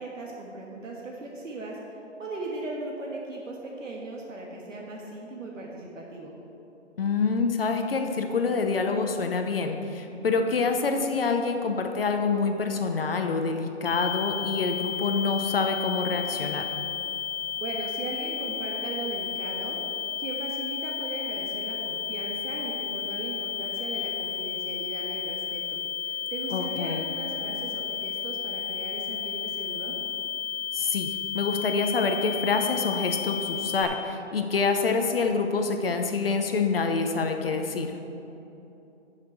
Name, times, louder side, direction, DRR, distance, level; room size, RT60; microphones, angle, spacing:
voice 1, 0.0-1.8 2.2-6.3 17.6-19.8 20.2-30.0, right 2 dB, 90° right, -2 dB, 1.6 m, -38 dB
voice 2, 7.0-16.7 26.5-27.1 30.7-38.0, left 4 dB, 50° left, 5 dB, 0.7 m, -26 dB
sound 1, 13.9-33.9, left 8 dB, 70° left, 1.1 m, -33 dB
11.5 x 5.8 x 4.5 m, 3.0 s
hypercardioid pair, 170°, 37 cm